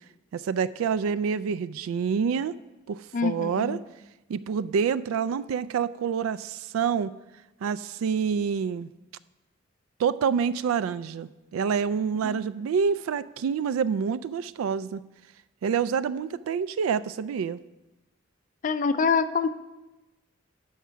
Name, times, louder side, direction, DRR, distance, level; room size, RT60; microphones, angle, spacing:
voice 1, 0.3-2.5 2.9-3.8 4.3-7.1 7.6-8.9 10.0-15.0 15.6-17.6, right 6 dB, 85° right, 17 dB, 0.3 m, -27 dB
voice 2, 3.1-3.8 12.2-12.4 18.6-19.5, left 5 dB, 40° left, 12 dB, 0.3 m, -25 dB
7.3 x 5.9 x 5.6 m, 1.0 s
head